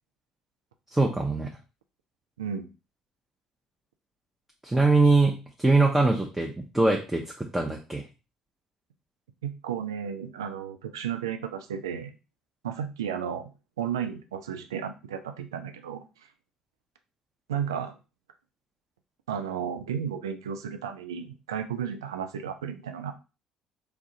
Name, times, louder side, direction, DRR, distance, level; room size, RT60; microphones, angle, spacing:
voice 1, 0.9-1.5 4.6-8.0, right 3 dB, 10° right, 0 dB, 0.5 m, -23 dB
voice 2, 9.4-12.2 12.6-13.5 13.8-16.0 17.5-17.9 19.3-23.1, right 8 dB, 75° right, 6 dB, 0.3 m, -33 dB
3.2 x 2.3 x 2.7 m, 0.30 s
figure-of-eight pair, 50°, 2 cm